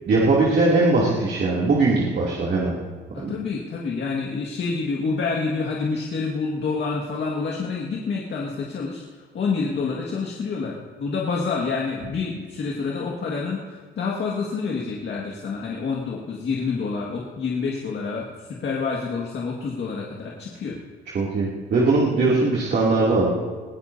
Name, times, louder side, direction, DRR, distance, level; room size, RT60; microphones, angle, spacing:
voice 1, 0.0-2.7 3.2-3.3 21.1-23.3, right 3 dB, 60° right, -6 dB, 2.9 m, -20 dB
voice 2, 3.1-20.8, left 4 dB, 60° left, -2 dB, 2.0 m, -28 dB
21.0 x 16.5 x 2.8 m, 1.4 s
cardioid pair, 90°, 20 cm